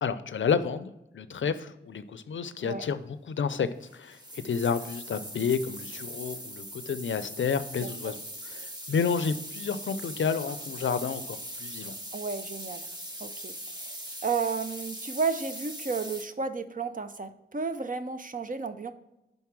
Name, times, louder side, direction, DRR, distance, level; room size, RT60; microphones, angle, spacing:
voice 1, 0.0-11.9, left 6 dB, 70° left, 13 dB, 0.5 m, -30 dB
sound 1, 3.8-16.2, equal, 20° right, 1.5 m, -41 dB
voice 2, 7.8-8.2 12.1-12.9 13.2-14.0 14.2-18.9, right 5 dB, 40° right, 9 dB, 0.7 m, -33 dB
5.4 x 4.7 x 5.9 m, 0.90 s
cardioid pair, 45°, 20 cm